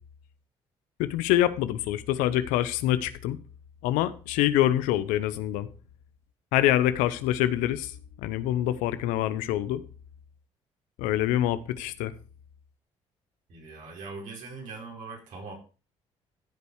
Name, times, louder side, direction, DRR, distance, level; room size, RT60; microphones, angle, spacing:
voice 1, 1.0-3.4 3.8-5.7 6.5-9.8 11.0-12.1, left 13 dB, 90° left, 14 dB, 0.8 m, -25 dB
voice 2, 13.5-15.5, right 4 dB, 75° right, -1 dB, 5.2 m, -41 dB
15.0 x 5.3 x 4.8 m, 0.35 s
supercardioid pair, 70°, 13 cm